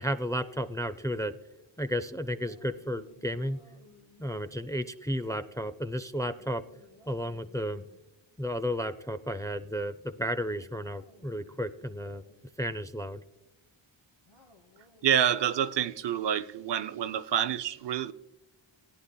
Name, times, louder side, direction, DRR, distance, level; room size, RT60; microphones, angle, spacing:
voice 1, 0.0-1.4 1.8-3.6 4.2-6.6 7.1-7.8 8.4-12.2 12.6-13.2, equal, 5° left, 0.4 m, -33 dB
sound 1, 2.4-4.8 6.4-8.0 10.2-12.5 14.3-15.8, left 3 dB, 70° left, 2.5 m, -59 dB
voice 2, 15.0-18.1, right 9 dB, 60° right, 0.5 m, -28 dB
17.0 x 9.7 x 2.2 m
cardioid pair, 55°, 49 cm